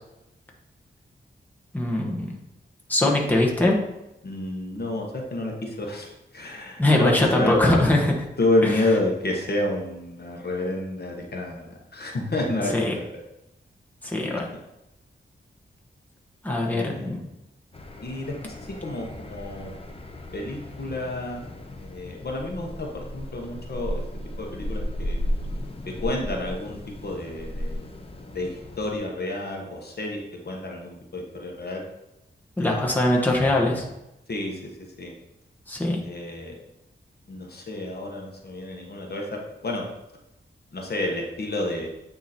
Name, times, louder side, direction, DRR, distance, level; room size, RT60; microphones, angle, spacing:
voice 1, 1.7-2.3 2.9-3.8 6.8-8.1 8.6-8.7 12.7-12.9 14.0-14.5 16.4-17.2 32.6-33.8 35.7-36.0, left 1 dB, 10° left, -2 dB, 1.2 m, -21 dB
voice 2, 4.2-7.6 8.4-13.0 16.7-17.1 18.0-19.7 20.3-21.4 21.8-24.0 24.4-25.2 25.9-27.9 28.3-31.8 32.6-33.1 34.3-34.7 35.0-35.1 36.0-36.5 37.3-39.9 40.7-41.9, left 2 dB, 55° left, 0 dB, 1.2 m, -30 dB
sound 1, 17.7-29.0, equal, 30° left, 0.8 m, -35 dB
9.0 x 3.0 x 4.2 m, 0.90 s
wide cardioid pair, 90°, 20 cm